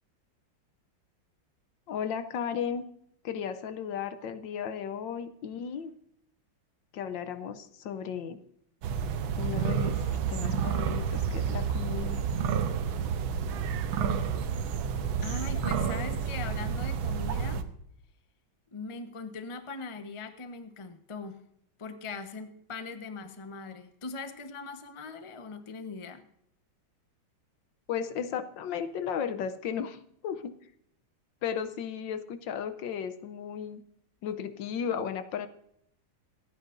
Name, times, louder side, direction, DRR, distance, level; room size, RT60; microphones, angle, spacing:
voice 1, 1.9-2.8 3.2-5.9 6.9-8.4 9.4-10.0 10.3-12.2 15.6-15.7 27.9-30.5 31.4-33.8 34.2-35.5, left 7 dB, 70° left, 11 dB, 1.4 m, -35 dB
sound 1, 8.8-17.6, right 7 dB, 85° right, 1.6 m, -30 dB
voice 2, 15.2-17.6 18.7-21.4 21.8-26.2, left 4 dB, 30° left, 7 dB, 0.6 m, -40 dB
26.0 x 9.4 x 2.6 m, 0.70 s
omnidirectional pair, 2.2 m